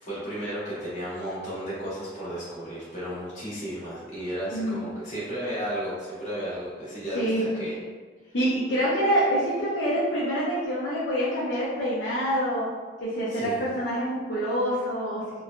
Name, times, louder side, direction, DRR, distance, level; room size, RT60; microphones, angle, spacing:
voice 1, 0.0-7.8 13.3-13.6, equal, 40° left, -10 dB, 1.2 m, -33 dB
voice 2, 8.3-12.7 13.0-15.2, equal, 75° left, -9 dB, 0.6 m, -26 dB
3.2 x 2.2 x 2.4 m, 1.5 s
head